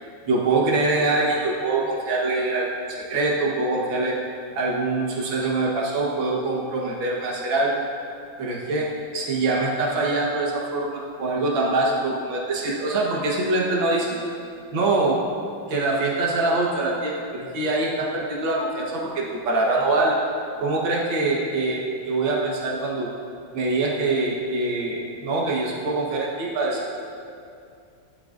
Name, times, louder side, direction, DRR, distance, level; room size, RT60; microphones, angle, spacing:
voice 1, 0.3-4.1 4.5-7.8 8.4-14.2 14.7-15.2 15.7-20.2 20.6-23.1 23.5-27.0, right 2 dB, 70° right, -3 dB, 2.1 m, -24 dB
17.0 x 11.5 x 2.6 m, 2.5 s
omnidirectional pair, 2.2 m